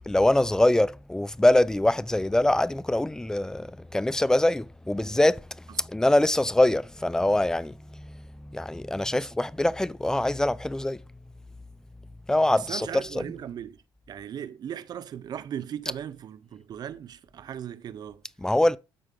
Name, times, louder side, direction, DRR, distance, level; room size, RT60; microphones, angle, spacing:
voice 1, 0.1-5.5 5.8-11.0 12.3-13.3 18.4-18.8, left 1 dB, 5° left, 0.4 m, -24 dB
voice 2, 12.5-13.8 14.1-18.2, right 9 dB, 50° right, 0.7 m, -38 dB
12.5 x 4.6 x 3.8 m
cardioid pair, 100°, 9 cm